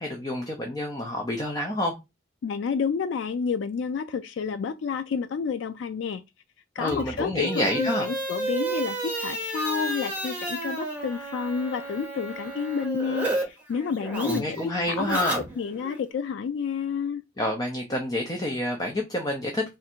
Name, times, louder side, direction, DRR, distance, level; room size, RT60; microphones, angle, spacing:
voice 1, 0.0-1.9 6.8-8.1 14.2-15.4 17.4-19.7, left 1 dB, 20° left, 0.6 m, -28 dB
voice 2, 2.4-6.2 6.8-14.6 14.9-15.2 15.6-17.2, left 6 dB, 85° left, 0.3 m, -30 dB
sound 1, 6.8-13.4 13.7-16.0, right 1 dB, 10° right, 1.1 m, -31 dB
3.2 x 2.5 x 4.4 m
head